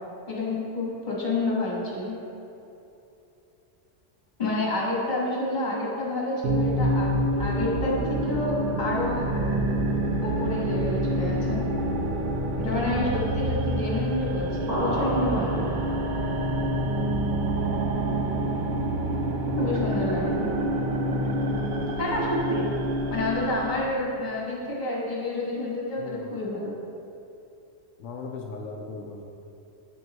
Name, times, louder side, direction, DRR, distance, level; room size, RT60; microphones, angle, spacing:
voice 1, 0.3-2.1 4.4-9.6 10.2-11.6 12.6-15.6 19.6-20.5 22.0-22.7 23.1-26.7, left 2 dB, 40° left, -5 dB, 1.5 m, -29 dB
sound 1, 6.4-23.9, right 1 dB, 55° right, 0.6 m, -27 dB
sound 2, 14.7-16.4, equal, 35° right, 1.7 m, -31 dB
voice 2, 16.5-16.8 19.7-19.8 21.2-21.7 26.0-26.3 28.0-29.2, left 4 dB, 85° left, 0 dB, 0.9 m, -39 dB
7.5 x 6.2 x 3.0 m, 2.8 s
omnidirectional pair, 1.2 m